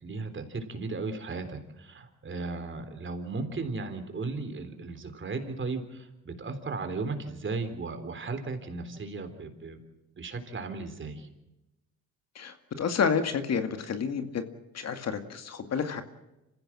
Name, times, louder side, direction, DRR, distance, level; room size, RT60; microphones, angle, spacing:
voice 1, 0.0-9.8 10.2-11.3, right 3 dB, 40° right, 7 dB, 3.7 m, -36 dB
voice 2, 12.4-14.4 14.7-16.0, left 6 dB, 60° left, 7 dB, 2.2 m, -29 dB
26.5 x 15.5 x 7.5 m, 0.97 s
cardioid pair, 90°, 30 cm